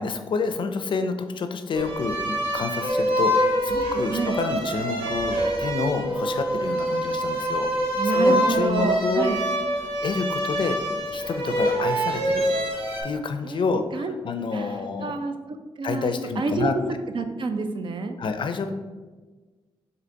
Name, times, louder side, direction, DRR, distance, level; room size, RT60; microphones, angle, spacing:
voice 1, 0.0-7.7 8.0-9.2 9.8-12.5 13.0-15.2 15.8-16.8 18.2-18.7, left 4 dB, 55° left, 8 dB, 0.4 m, -28 dB
sound 1, 1.7-13.0, right 1 dB, 75° right, 1.1 m, -25 dB
voice 2, 8.0-9.4 13.4-13.7 13.9-14.1 14.5-16.8 17.1-18.2, right 4 dB, 55° right, 7 dB, 0.5 m, -29 dB
4.0 x 2.7 x 4.4 m, 1.3 s
cardioid pair, 65°, 10 cm